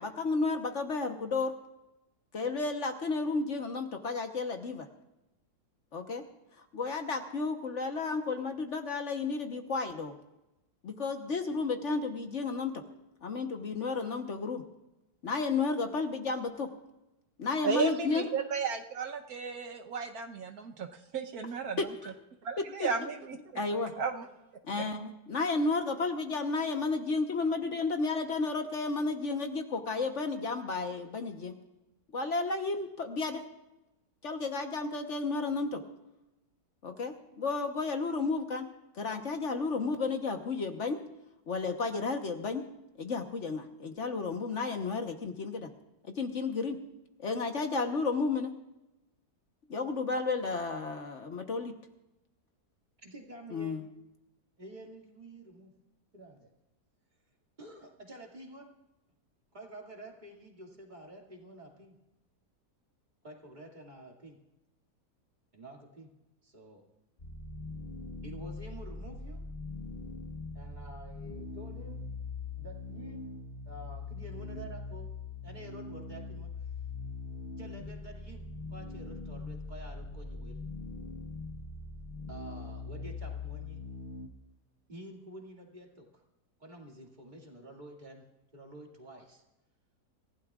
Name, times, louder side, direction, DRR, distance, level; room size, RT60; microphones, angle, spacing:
voice 1, 0.0-1.5 2.3-4.9 5.9-6.2 6.6-10.1 10.8-12.8 13.2-14.6 15.2-16.7 17.4-18.3 21.8-22.1 22.6-23.1 23.5-23.9 24.6-31.5 32.1-33.4 34.2-35.8 36.8-38.7 38.9-41.0 41.5-42.7 43.0-45.7 46.0-46.8 47.2-48.5 49.7-51.8 53.5-53.8, left 4 dB, 50° left, 5 dB, 1.3 m, -32 dB
voice 2, 17.6-20.9 21.1-21.8 22.4-23.4 24.0-24.3, right 5 dB, 70° right, 5 dB, 1.4 m, -34 dB
voice 3, 53.0-53.8 54.6-55.7 56.1-56.5 57.6-58.7 59.5-62.0 63.2-64.4 65.5-66.1 66.4-66.8 68.2-69.4 70.5-72.1 72.6-73.3 73.7-75.1 75.4-76.5 77.6-80.6 82.3-83.8 84.9-86.2 86.6-88.3 88.5-89.4, right 1 dB, 30° right, 0 dB, 2.4 m, -49 dB
sound 1, 67.2-84.3, left 3 dB, 35° left, 1.3 m, -42 dB
27.0 x 15.5 x 2.4 m, 0.97 s
omnidirectional pair, 1.7 m